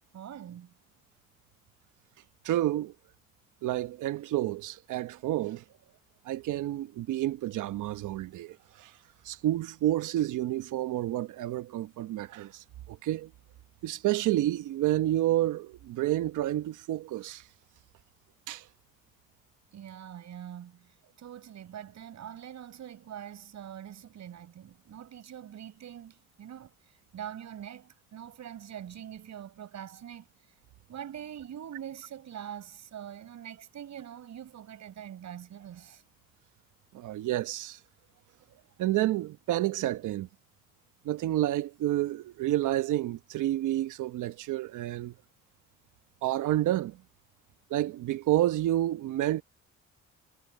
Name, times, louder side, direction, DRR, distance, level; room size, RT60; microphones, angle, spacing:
voice 1, 0.1-0.7 19.7-30.3 30.9-36.0, right 10 dB, 65° right, 5.8 m, -44 dB
voice 2, 2.4-2.9 3.6-5.6 6.2-8.9 9.2-13.3 13.8-17.4 18.5-18.6 36.9-37.8 38.8-40.3 41.0-45.1 46.2-47.0 47.7-49.4, right 14 dB, 85° right, 1.1 m, -29 dB
cardioid pair, 90°, 30 cm